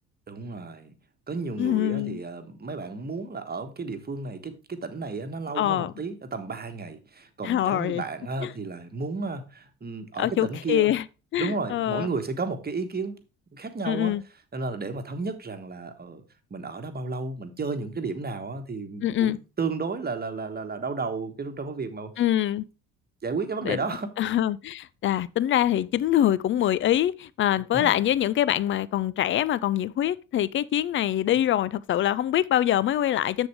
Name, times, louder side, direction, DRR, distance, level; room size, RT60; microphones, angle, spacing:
voice 1, 0.3-0.9 1.3-10.9 11.4-13.2 13.5-14.1 14.5-16.2 16.5-22.1 23.2-24.1 27.7-28.0, right 4 dB, 20° right, 1.3 m, -33 dB
voice 2, 1.6-2.2 5.6-5.9 7.4-8.0 8.4-8.5 10.2-11.0 11.3-12.1 13.9-14.2 19.0-19.4 22.2-22.6 23.6-23.8 24.2-33.5, left 12 dB, 30° left, 0.4 m, -24 dB
7.2 x 6.8 x 3.5 m
figure-of-eight pair, 55°, 43 cm